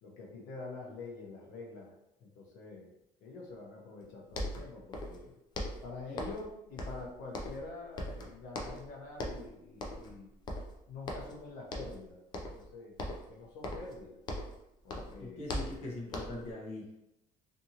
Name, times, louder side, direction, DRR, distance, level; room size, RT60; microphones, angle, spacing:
voice 1, 0.0-1.9 2.2-2.9 3.2-5.3 5.8-10.3 10.9-12.2 12.5-12.9 13.3-14.2 14.8-15.5, left 3 dB, 85° left, -2 dB, 0.7 m, -46 dB
sound 1, 4.0-4.1 4.3-5.2 5.5-6.5 6.8-7.7 8.0-8.9 9.2-9.5 9.8-10.2 10.5-11.4 11.7-12.0 12.3-12.7 13.0-14.6 14.9-16.5, left 1 dB, 30° left, 0.4 m, -40 dB
voice 2, 15.2-17.1, left 2 dB, 45° left, -4 dB, 0.7 m, -42 dB
2.7 x 2.5 x 2.8 m, 0.84 s
cardioid pair, 175°, 15 cm